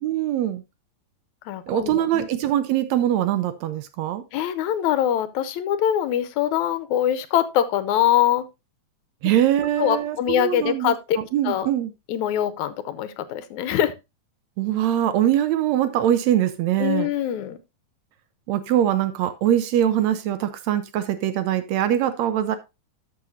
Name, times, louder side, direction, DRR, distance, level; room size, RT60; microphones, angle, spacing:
voice 1, 0.0-0.6 1.7-4.2 9.2-11.9 14.6-17.1 18.5-22.6, right 11 dB, 75° right, 1.8 m, -22 dB
voice 2, 1.5-2.3 4.3-8.5 9.8-11.2 11.4-11.7 12.1-13.9 16.8-17.6, left 11 dB, 80° left, 2.1 m, -23 dB
13.0 x 6.8 x 2.6 m
omnidirectional pair, 3.4 m